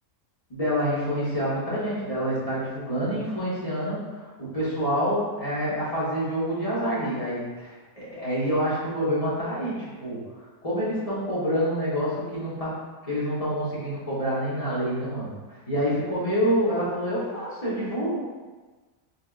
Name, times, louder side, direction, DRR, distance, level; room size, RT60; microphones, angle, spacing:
voice 1, 0.5-10.2 10.6-12.8 13.0-15.3 15.7-18.2, equal, 30° left, -10 dB, 0.8 m, -27 dB
3.4 x 3.4 x 2.3 m, 1.3 s
omnidirectional pair, 1.6 m